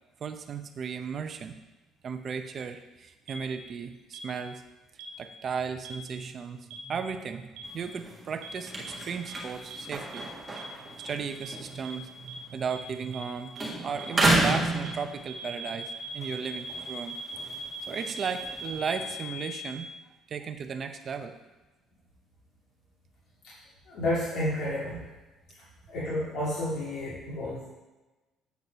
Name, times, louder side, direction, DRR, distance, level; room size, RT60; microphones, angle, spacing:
voice 1, 0.2-1.6 2.0-4.6 5.2-10.3 10.7-13.5 13.8-17.2 17.9-19.9 20.3-21.3, right 6 dB, 35° right, 8 dB, 0.6 m, -35 dB
sound 1, 3.3-3.4 4.1-4.2 5.0-5.1 5.8-5.9 6.7-6.8 7.6-7.7 8.4-8.5 8.8-8.9 9.3-9.4 9.7-9.8 10.1-10.2 10.6-10.7 11.0-11.1 11.4-11.5 11.8-11.9 12.3-12.4 12.7-12.8 13.1-13.2 13.6-13.7 14.0-14.1 14.4-14.5 14.8-14.9 15.3-19.7, right 3 dB, 60° right, 1.5 m, -40 dB
sound 2, 7.6-13.3 13.5-15.6 16.0-19.1, right 2 dB, 15° right, 1.5 m, -32 dB
voice 2, 23.9-25.0 25.9-27.7, left 1 dB, 65° left, -9 dB, 2.7 m, -31 dB
8.2 x 4.6 x 5.5 m, 1.1 s
cardioid pair, 145°, 0 cm